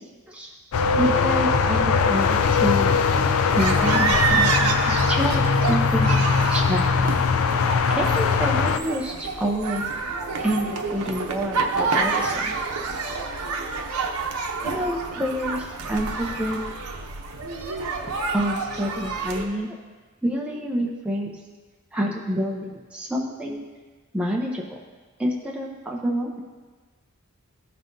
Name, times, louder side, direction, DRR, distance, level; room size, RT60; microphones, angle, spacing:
sound 1, 0.7-8.8, left 5 dB, 75° left, 0.4 m, -21 dB
voice 1, 1.0-2.9 3.6-6.9 7.9-9.9 10.4-12.5 13.0-13.1 14.6-16.6 18.3-19.7 20.2-21.3 21.9-23.6 24.1-24.7 25.2-26.4, equal, 5° right, -3 dB, 0.6 m, -28 dB
sound 2, 3.5-19.5, right 4 dB, 85° right, 0.8 m, -28 dB
14.0 x 5.5 x 2.6 m, 1.4 s
head